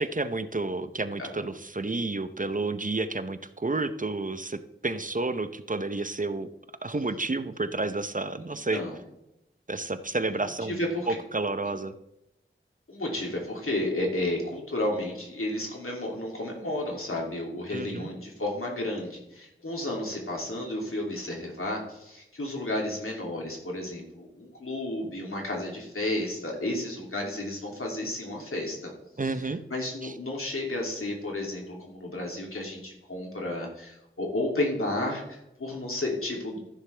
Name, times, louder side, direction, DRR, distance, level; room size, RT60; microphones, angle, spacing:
voice 1, 0.0-6.5 6.8-8.8 9.7-11.9 17.7-18.1 29.2-29.6 30.0-30.1, right 3 dB, 40° right, 11 dB, 0.7 m, -30 dB
voice 2, 10.3-11.2 12.9-28.9 29.7-36.6, left 1 dB, 85° left, -1 dB, 2.8 m, -32 dB
14.5 x 6.7 x 3.4 m, 0.87 s
wide cardioid pair, 45°, 21 cm